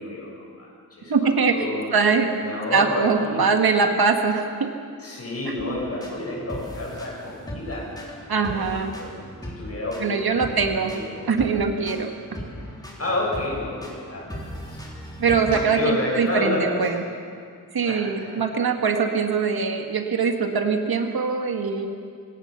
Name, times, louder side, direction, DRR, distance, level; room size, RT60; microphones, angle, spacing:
voice 1, 0.0-1.9 2.4-3.5 5.0-8.6 8.9-9.2 9.4-11.3 13.0-14.4 14.7-14.8 15.4-17.0 17.8-18.4, left 2 dB, 40° left, -3 dB, 7.7 m, -30 dB
voice 2, 1.1-2.4 2.7-4.7 5.5-5.8 8.3-8.9 10.0-10.9 11.3-12.1 15.2-17.0 17.7-21.9, right 5 dB, 75° right, 4 dB, 1.8 m, -22 dB
sound 1, 5.6-15.6, equal, 10° left, 3.6 m, -38 dB
23.5 x 18.0 x 6.9 m, 2.2 s
wide cardioid pair, 145°, 37 cm